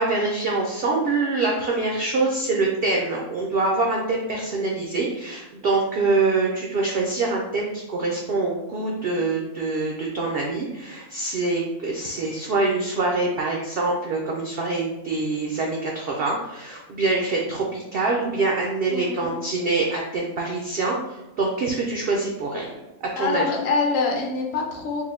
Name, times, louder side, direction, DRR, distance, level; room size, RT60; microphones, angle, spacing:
voice 1, 0.0-21.0 21.4-22.7 23.2-23.4, right 3 dB, 80° right, -1 dB, 0.5 m, -25 dB
voice 2, 18.9-19.4 23.1-25.0, left 4 dB, 55° left, 0 dB, 0.8 m, -25 dB
4.2 x 2.0 x 3.5 m, 1.0 s
omnidirectional pair, 1.6 m